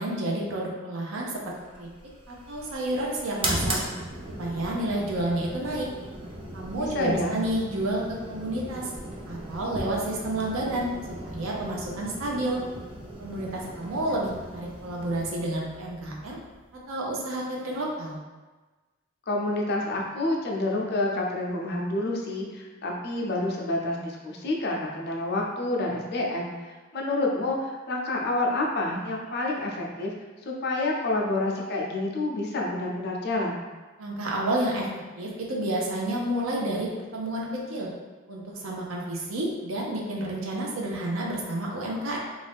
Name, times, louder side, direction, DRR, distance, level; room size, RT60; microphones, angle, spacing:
voice 1, 0.0-1.9 2.3-3.8 4.4-5.9 6.5-8.9 9.3-12.6 13.2-16.4 16.9-18.2 34.0-34.9 35.2-37.9 38.3-42.2, right 1 dB, 85° right, -2 dB, 0.6 m, -30 dB
sound 1, 1.6-16.9, right 1 dB, 25° right, 0.4 m, -37 dB
voice 2, 6.8-7.3 19.3-26.5 26.9-30.1 30.5-33.6, left 2 dB, 55° left, -1 dB, 0.5 m, -28 dB
2.6 x 2.4 x 3.4 m, 1.3 s
head